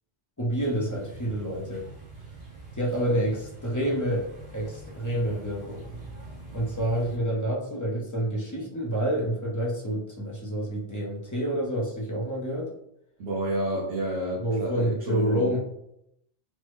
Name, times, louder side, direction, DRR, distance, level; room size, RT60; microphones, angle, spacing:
voice 1, 0.4-1.8 2.7-5.8 6.5-12.7 14.4-15.6, right 1 dB, 25° left, -3 dB, 0.5 m, -28 dB
sound 1, 0.6-7.2, right 2 dB, 80° right, 1.4 m, -44 dB
voice 2, 13.2-15.6, right 1 dB, 60° right, -6 dB, 1.0 m, -29 dB
3.3 x 2.1 x 3.1 m, 0.78 s
omnidirectional pair, 1.3 m